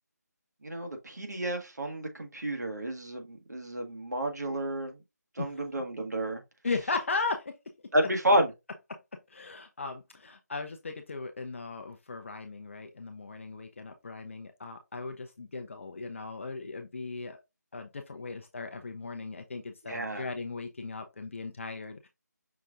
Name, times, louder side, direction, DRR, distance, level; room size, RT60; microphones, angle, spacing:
voice 1, 0.6-5.0 5.3-6.4 7.9-8.5 19.8-20.3, right 1 dB, 70° right, 1.5 m, -30 dB
voice 2, 6.6-7.5 8.9-17.4 17.7-22.1, left 3 dB, 45° left, 0.5 m, -37 dB
5.8 x 2.5 x 3.6 m
figure-of-eight pair, 160°, 10 cm